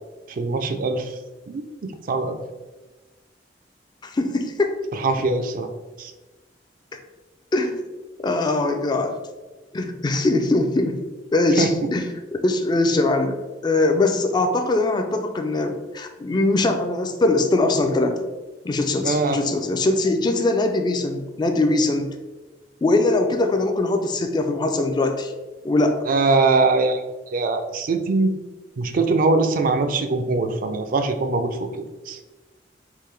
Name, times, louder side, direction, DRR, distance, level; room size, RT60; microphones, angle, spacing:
voice 1, 0.3-1.2 1.5-1.6 2.1-2.4 4.9-5.7 6.0-6.1 11.6-11.7 19.0-19.4 26.1-27.0 27.3-28.3 28.8-32.2, right 3 dB, 50° right, 7 dB, 0.4 m, -22 dB
voice 2, 4.0-4.8 7.5-7.8 8.2-9.2 9.7-11.0 11.3-18.3 18.6-22.1 22.8-25.3 25.6-26.0, left 2 dB, 25° left, 5 dB, 0.3 m, -21 dB
3.6 x 2.6 x 3.2 m, 1.2 s
head